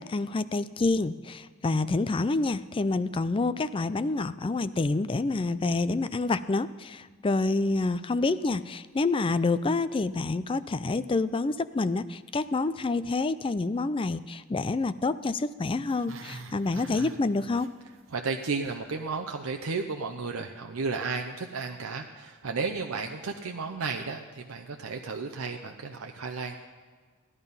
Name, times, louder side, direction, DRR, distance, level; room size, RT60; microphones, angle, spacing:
voice 1, 0.0-17.7, left 3 dB, 25° left, 14 dB, 0.4 m, -28 dB
Growling, 15.8-18.1 18.4-18.8 19.2-19.3, right 3 dB, 65° right, 1.1 m, -45 dB
voice 2, 18.1-26.6, right 4 dB, 90° right, 4 dB, 0.7 m, -33 dB
15.0 x 11.0 x 5.5 m, 1.5 s
head